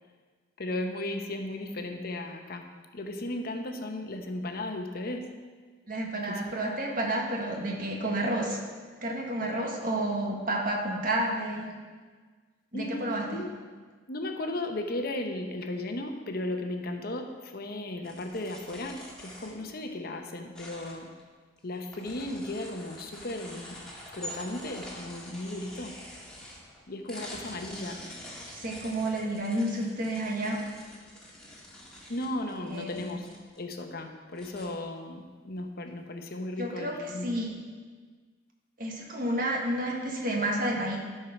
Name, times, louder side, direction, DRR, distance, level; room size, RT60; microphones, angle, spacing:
voice 1, 0.6-2.6 2.9-5.2 6.3-6.5 12.7-13.5 14.1-21.1 21.6-23.8 24.1-25.9 26.9-28.0 32.1-33.2 33.6-37.4, left 1 dB, 55° left, 5 dB, 0.9 m, -35 dB
voice 2, 5.9-8.6 9.0-11.7 12.7-13.2 28.5-30.7 32.7-33.0 36.6-37.5 38.8-41.0, right 1 dB, 50° right, -1 dB, 1.6 m, -30 dB
sound 1, 18.0-19.7 20.5-21.2 21.6-26.8 27.1-33.6 34.0-34.1 34.3-34.7, left 1 dB, 5° left, 1.7 m, -46 dB
13.0 x 4.7 x 5.8 m, 1.5 s
head